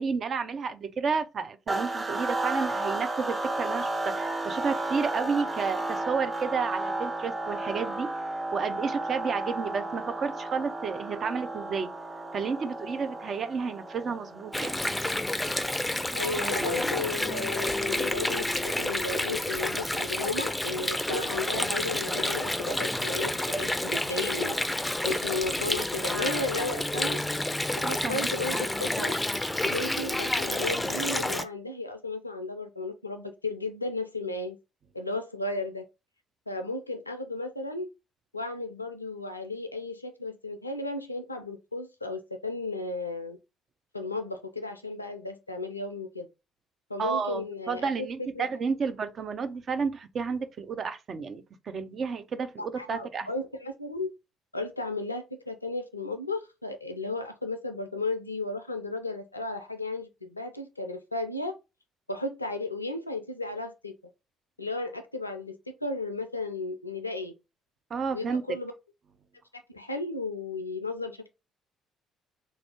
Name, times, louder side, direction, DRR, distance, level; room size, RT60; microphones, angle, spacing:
voice 1, 0.0-8.1 8.5-11.9 12.3-14.7 27.8-28.3 47.0-53.3 67.9-68.4, right 5 dB, 45° right, 0.5 m, -31 dB
sound 1, 1.7-15.1, right 2 dB, 25° right, 0.9 m, -33 dB
Water, 14.5-31.4, left 1 dB, 10° left, 0.4 m, -29 dB
voice 2, 16.1-24.6 25.0-27.2 27.8-29.1 29.6-34.6 34.9-35.8 36.5-37.9 38.3-43.4 43.9-46.3 46.9-48.5 52.6-54.1 54.5-61.5 62.1-63.9 64.6-67.3 68.1-68.7 69.5-71.3, left 2 dB, 90° left, 0.3 m, -34 dB
3.2 x 2.5 x 3.3 m
figure-of-eight pair, 50°, 0 cm